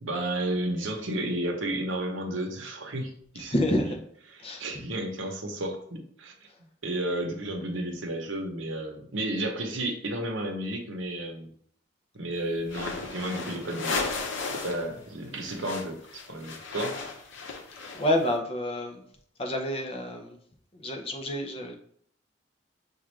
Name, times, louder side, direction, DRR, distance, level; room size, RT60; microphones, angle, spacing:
voice 1, 0.0-3.5 4.3-6.3 6.8-11.5 12.1-14.0 14.5-16.0 16.3-17.0, right 1 dB, 80° right, 3 dB, 0.8 m, -32 dB
voice 2, 3.4-4.0 4.4-4.6 6.5-6.6 17.8-19.0 19.4-20.4 20.7-21.7, left 1 dB, 30° left, 3 dB, 0.5 m, -29 dB
sound 1, 12.6-14.9 15.1-18.3, left 4 dB, 75° left, 0.7 m, -35 dB
6.0 x 2.4 x 3.1 m, 0.62 s
head